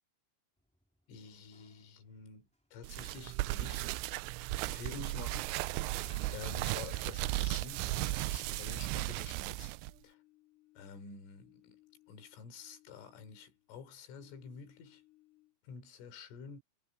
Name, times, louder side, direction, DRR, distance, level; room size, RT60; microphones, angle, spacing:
Slam, 0.6-8.2, equal, ahead, 1.8 m, -65 dB
voice 1, 1.1-3.9 4.6-9.7 10.0-10.2 10.8-11.8 12.1-15.0 15.6-16.6, left 5 dB, 85° left, 6.1 m, -49 dB
sound 1, 2.8-9.9, right 19 dB, 85° right, 2.9 m, -36 dB
sound 2, 7.0-9.5 9.8-13.7 14.1-15.7, left 19 dB, 65° left, 6.6 m, -67 dB
omnidirectional pair, 5.6 m